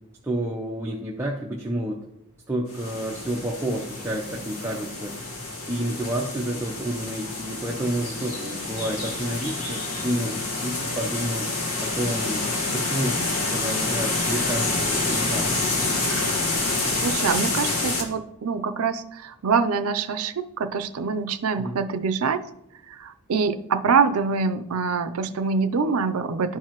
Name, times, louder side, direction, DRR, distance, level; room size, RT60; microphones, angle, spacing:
voice 1, 0.2-2.0 2.5-5.1 5.7-11.5 11.8-12.4 12.7-15.5 21.6-21.8, right 1 dB, 10° right, -2 dB, 0.5 m, -30 dB
sound 1, 2.7-18.0, left 2 dB, 80° left, 1.6 m, -28 dB
voice 2, 16.7-22.4 22.9-26.6, right 5 dB, 75° right, 11 dB, 0.5 m, -25 dB
11.0 x 4.7 x 2.9 m, 0.80 s
head